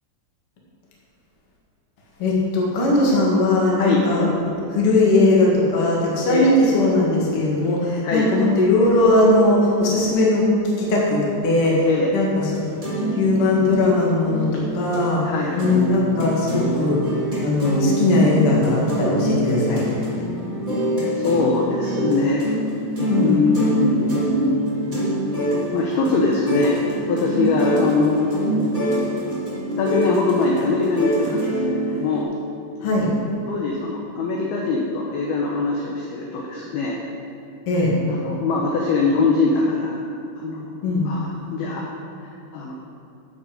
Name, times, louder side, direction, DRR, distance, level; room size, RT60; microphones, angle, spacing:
voice 1, 2.2-4.3 4.7-10.5 10.8-11.9 12.1-12.5 13.1-17.0 17.4-19.9 23.1-23.4 32.8-33.1 37.7-37.9 40.8-41.1, left 2 dB, 45° left, -4 dB, 1.9 m, -19 dB
sound 1, 12.5-15.0 15.4-32.2, right 1 dB, 20° right, 1.4 m, -24 dB
voice 2, 15.3-15.6 21.2-22.5 23.2-24.5 25.7-26.8 27.1-28.8 29.8-31.6 31.9-32.3 33.5-37.0 38.1-40.0 40.4-40.7 41.1-41.8 42.5-42.8, left 3 dB, 75° left, -2 dB, 2.3 m, -22 dB
14.5 x 6.8 x 5.2 m, 2.5 s
omnidirectional pair, 5.7 m